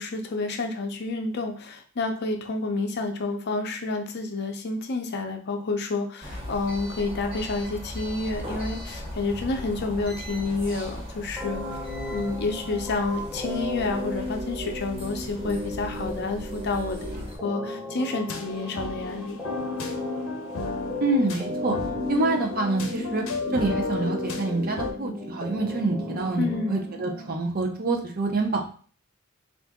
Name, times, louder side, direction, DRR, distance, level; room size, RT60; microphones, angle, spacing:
voice 1, 0.0-11.6 12.1-19.4 26.4-26.8, left 3 dB, 55° left, 5 dB, 0.6 m, -29 dB
sound 1, 6.2-17.4, equal, 25° right, 1.0 m, -38 dB
sound 2, 11.4-27.4, left 2 dB, 5° right, 0.8 m, -35 dB
sound 3, 18.3-24.9, left 3 dB, 90° left, 0.6 m, -34 dB
voice 2, 21.0-21.8 22.1-23.2 23.5-28.7, right 2 dB, 45° right, 2 dB, 0.6 m, -26 dB
3.7 x 2.6 x 3.5 m, 0.42 s
head